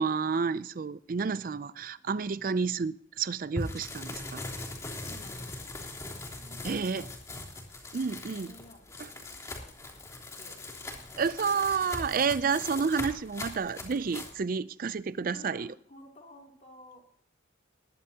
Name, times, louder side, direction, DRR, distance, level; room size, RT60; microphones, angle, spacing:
voice 1, 0.0-4.4 6.6-7.1 7.9-8.5 11.2-15.7, right 5 dB, 45° right, 0.4 m, -30 dB
voice 2, 0.8-2.0 5.0-5.8 6.4-7.1 7.9-10.7 15.3-17.0, left 1 dB, 40° left, 3.0 m, -55 dB
sound 1, 3.6-14.3, left 2 dB, 15° left, 3.1 m, -40 dB
21.0 x 11.0 x 2.9 m
head